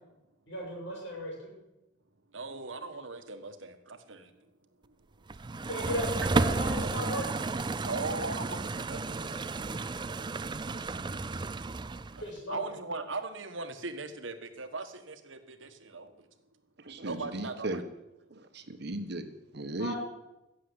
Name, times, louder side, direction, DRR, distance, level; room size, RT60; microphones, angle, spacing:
voice 1, 0.5-1.5 5.7-7.3 12.2-12.7 19.8-20.0, left 1 dB, 70° left, -2 dB, 6.8 m, -36 dB
voice 2, 2.3-4.5 4.9-5.0 7.8-9.8 12.1-16.3 17.0-17.9, right 3 dB, 85° right, 8 dB, 1.4 m, -39 dB
sound 1, 5.3-12.3, right 3 dB, 25° right, 0.4 m, -32 dB
voice 3, 16.8-17.8 18.3-20.0, right 2 dB, 60° right, 9 dB, 1.3 m, -37 dB
15.5 x 7.5 x 8.1 m, 0.94 s
head